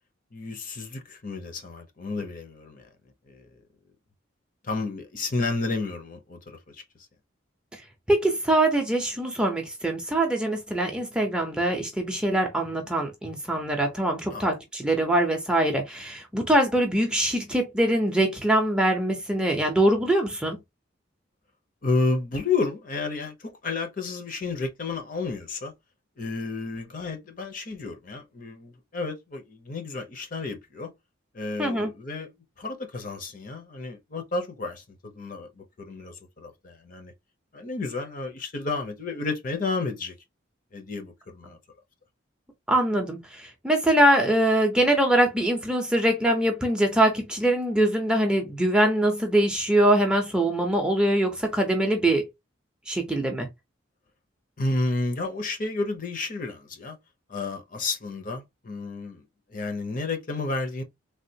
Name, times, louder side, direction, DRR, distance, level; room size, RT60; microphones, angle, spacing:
voice 1, 0.3-2.9 3.3-3.6 4.6-6.8 14.3-14.5 21.8-25.7 26.2-30.9 31.3-32.3 32.6-37.1 37.5-40.1 40.7-41.6 54.6-57.0 57.3-59.2 59.5-60.8, left 3 dB, 45° left, 0.7 m, -31 dB
voice 2, 8.1-20.6 31.6-31.9 42.7-52.3 52.9-53.5, right 1 dB, 5° right, 0.6 m, -23 dB
3.4 x 2.4 x 2.7 m
head